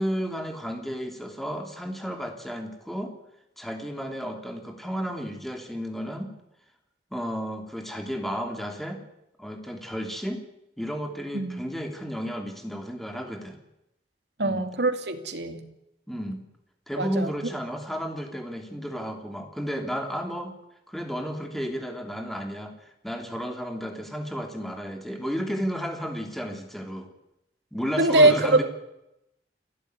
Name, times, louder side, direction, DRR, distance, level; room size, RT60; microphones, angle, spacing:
voice 1, 0.0-3.1 3.6-6.3 7.1-9.0 9.4-10.4 10.8-13.6 14.4-14.7 16.1-16.4 16.9-20.5 20.9-22.7 23.0-27.1 27.7-28.6, equal, ahead, 4 dB, 3.1 m, -32 dB
voice 2, 11.3-11.6 14.4-15.6 17.0-17.3 28.0-28.6, right 2 dB, 70° right, 7 dB, 2.6 m, -22 dB
29.5 x 11.5 x 9.6 m, 0.85 s
head